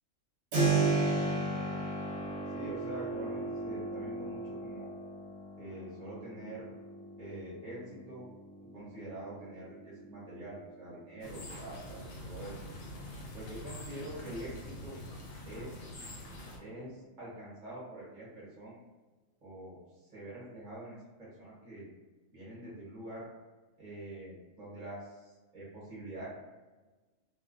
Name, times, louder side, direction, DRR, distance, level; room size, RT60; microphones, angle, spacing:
voice 1, 0.5-1.8 2.5-5.0 5.6-6.7 7.2-8.3 8.7-12.6 13.3-15.0 15.5-16.1 16.6-18.8 19.4-21.9 22.3-23.3 23.8-26.3, right 1 dB, 35° right, -7 dB, 1.0 m, -45 dB
Keyboard (musical), 0.5-11.2, right 3 dB, 65° right, 1.1 m, -35 dB
sound 1, 11.2-16.6, left 1 dB, 60° left, 0.7 m, -45 dB
2.9 x 2.3 x 2.4 m, 1.2 s
omnidirectional pair, 1.3 m